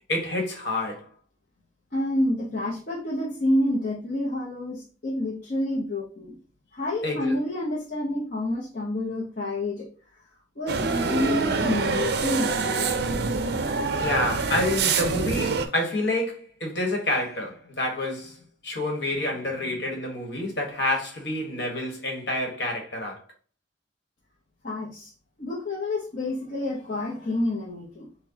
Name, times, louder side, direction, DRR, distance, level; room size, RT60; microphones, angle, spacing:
voice 1, 0.1-1.1 7.0-7.3 14.0-18.4 18.6-23.2, left 1 dB, 60° left, 1.3 m, -28 dB
voice 2, 1.9-6.4 6.7-9.9 10.6-13.3 19.6-19.7 24.6-25.1 25.4-28.1, left 1 dB, 45° left, 0.8 m, -28 dB
sound 1, 10.7-15.7, right 4 dB, 55° right, 0.4 m, -25 dB
5.8 x 2.2 x 2.8 m
head